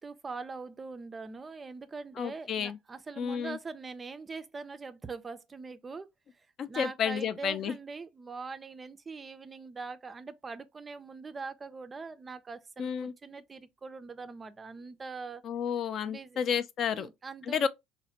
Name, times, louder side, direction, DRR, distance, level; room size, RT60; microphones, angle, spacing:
voice 1, 0.0-6.1 6.3-15.4 16.1-16.4 16.9-17.7, right 4 dB, 25° right, 0.3 m, -42 dB
voice 2, 2.2-2.8 3.2-3.6 6.6-7.7 12.8-13.1 15.4-17.1 17.5-17.7, left 7 dB, 50° left, 0.3 m, -31 dB
3.1 x 2.1 x 2.8 m
hypercardioid pair, 65°, 0 cm